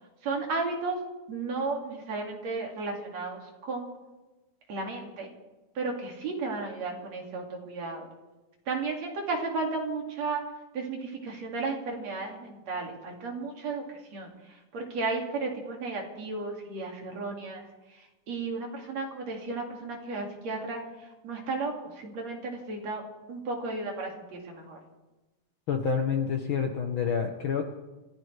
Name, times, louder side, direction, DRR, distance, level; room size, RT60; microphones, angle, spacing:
voice 1, 0.2-1.0 1.3-3.9 4.7-5.3 5.8-8.1 8.7-10.4 10.7-23.0 23.3-24.8, right 3 dB, 60° right, 1 dB, 3.7 m, -34 dB
voice 2, 25.7-27.6, left 6 dB, 60° left, 4 dB, 1.4 m, -28 dB
27.0 x 15.0 x 3.4 m, 1.1 s
omnidirectional pair, 3.5 m